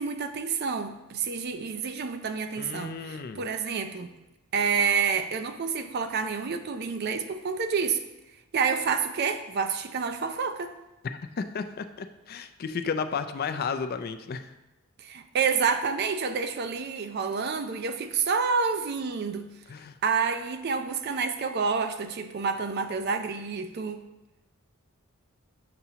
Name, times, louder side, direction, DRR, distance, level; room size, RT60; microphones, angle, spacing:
voice 1, 0.0-4.1 4.5-8.0 8.5-10.8 15.0-19.5 20.0-24.0, right 5 dB, 50° right, 8 dB, 0.4 m, -28 dB
voice 2, 2.6-3.4 11.4-14.5 19.7-20.0, left 5 dB, 45° left, 9 dB, 0.3 m, -33 dB
6.7 x 5.9 x 2.8 m, 0.99 s
head